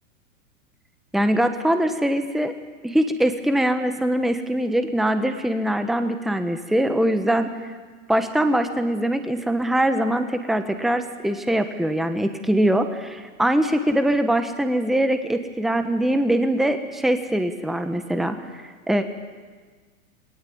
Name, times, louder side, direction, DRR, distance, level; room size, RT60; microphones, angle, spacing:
voice 1, 1.1-2.5 2.8-7.5 8.1-19.1, right 1 dB, ahead, 8 dB, 1.2 m, -22 dB
20.5 x 19.0 x 8.8 m, 1.5 s
hypercardioid pair, 115°, 42 cm